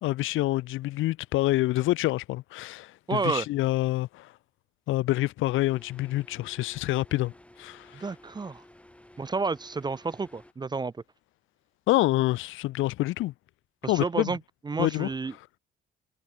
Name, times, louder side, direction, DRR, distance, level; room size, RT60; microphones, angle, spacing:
voice 1, 0.0-4.3 4.9-7.3 7.6-8.1 11.9-13.3 13.8-14.4 14.8-15.5, left 17 dB, 85° left, 0.6 m, -27 dB
voice 2, 3.1-3.5 7.9-8.6 9.2-10.9 13.8-14.4 14.7-15.3, right 4 dB, 20° right, 0.5 m, -30 dB
sound 1, 5.5-10.5, left 1 dB, 5° left, 7.8 m, -54 dB
cardioid pair, 90°, 20 cm